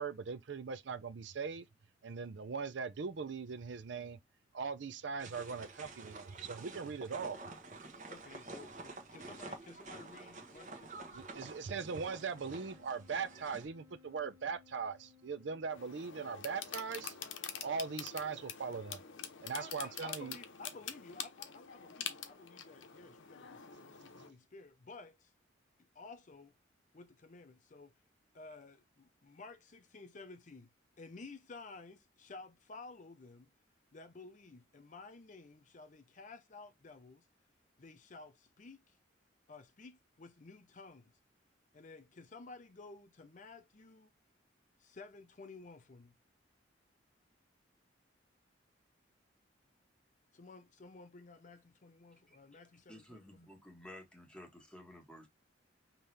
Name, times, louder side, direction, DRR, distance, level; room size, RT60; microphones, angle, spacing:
voice 1, 0.0-1.7 2.0-4.2 4.5-7.4 11.1-17.2 17.6-19.0 19.4-20.4, right 5 dB, 70° right, 0.5 m, -40 dB
sound 1, 5.2-13.7, right 3 dB, 40° right, 1.1 m, -50 dB
voice 2, 8.1-11.6 19.5-25.3 25.9-26.5 26.9-27.9 28.3-30.7 31.0-33.5 33.9-37.3 37.8-39.0 39.5-41.2 41.7-44.1 44.8-46.2 50.3-53.2, left 3 dB, 40° left, 0.5 m, -53 dB
Wind instrument woodwind instrument, 11.8-17.5, left 5 dB, 15° right, 0.8 m, -64 dB
sound 2, 15.7-24.3, left 8 dB, 85° left, 0.7 m, -46 dB
voice 3, 52.9-55.3, left 1 dB, 5° left, 1.4 m, -53 dB
5.4 x 2.9 x 3.3 m
head